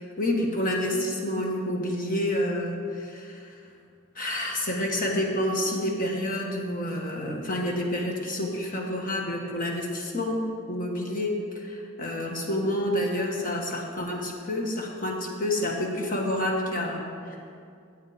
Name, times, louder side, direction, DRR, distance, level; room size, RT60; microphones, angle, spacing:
voice 1, 0.0-3.4 4.1-10.4 10.7-17.0, left 1 dB, 45° left, 0 dB, 1.4 m, -28 dB
10.0 x 7.9 x 5.0 m, 2.4 s
head